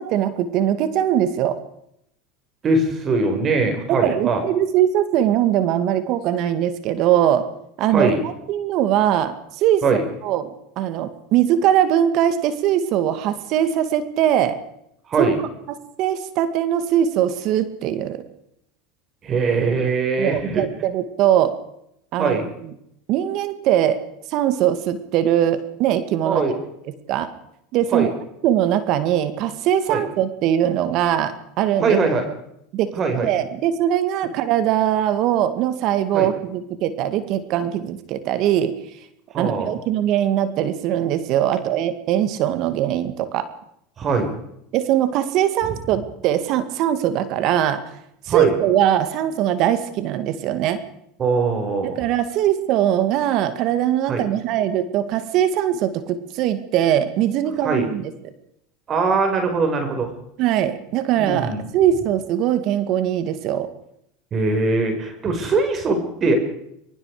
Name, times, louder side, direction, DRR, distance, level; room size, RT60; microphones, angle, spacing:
voice 1, 0.0-1.6 3.9-7.4 7.8-9.8 10.2-10.5 10.8-14.6 15.2-15.3 16.0-18.2 20.2-21.5 22.1-22.4 23.1-24.0 24.3-26.4 27.1-27.3 27.7-28.1 28.4-32.0 32.7-32.9 33.2-38.7 39.3-43.5 44.7-47.8 48.3-50.8 51.8-58.0 60.4-63.7, right 11 dB, 55° right, 11 dB, 2.2 m, -21 dB
voice 2, 2.6-4.4 7.9-8.2 9.8-10.0 15.1-15.4 19.2-20.6 22.2-22.5 26.2-26.5 27.9-28.1 29.9-30.0 31.8-32.3 33.0-33.3 36.1-36.3 39.3-39.7 44.0-44.3 45.6-45.7 48.3-48.5 51.2-52.0 54.1-54.2 57.6-57.9 58.9-60.1 61.2-61.6 64.3-66.4, right 3 dB, 35° right, 5 dB, 5.5 m, -21 dB
23.0 x 22.5 x 5.0 m, 0.75 s
hypercardioid pair, 100°, 0 cm